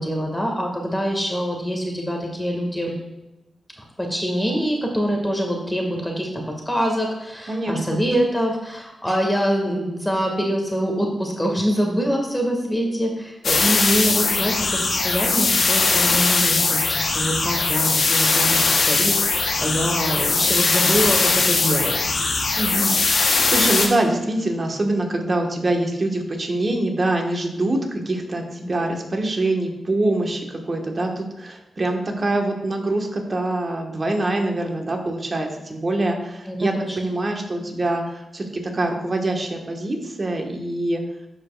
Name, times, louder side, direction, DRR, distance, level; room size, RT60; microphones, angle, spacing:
voice 1, 0.0-2.9 3.8-6.3 6.7-22.1 36.5-37.0, equal, 10° left, 1 dB, 1.9 m, -24 dB
voice 2, 7.5-8.0 22.6-41.0, right 2 dB, 45° right, 2 dB, 1.5 m, -24 dB
sound 1, 13.4-23.9, left 3 dB, 65° left, 1.1 m, -20 dB
12.5 x 5.0 x 2.5 m, 0.95 s
cardioid pair, 50°, 0 cm